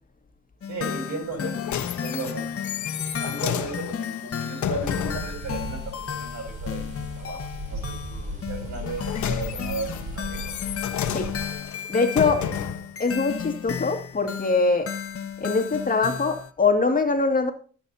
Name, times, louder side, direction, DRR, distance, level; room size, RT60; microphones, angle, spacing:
sound 1, 0.6-16.5, left 8 dB, 50° left, 1.3 m, -34 dB
voice 1, 0.7-2.7 3.1-10.6 12.4-12.6, right 3 dB, 65° right, 3 dB, 7.1 m, -36 dB
sound 2, 1.3-5.4 8.7-12.9 13.6-13.7, left 9 dB, 70° left, 1.3 m, -31 dB
sound 3, 4.8-11.6, right 1 dB, 25° right, 3.9 m, -36 dB
voice 2, 11.9-12.4 13.0-14.9 15.4-17.5, left 4 dB, 25° left, 3 dB, 2.3 m, -23 dB
19.5 x 8.7 x 2.8 m, 0.41 s
cardioid pair, 90°, 30 cm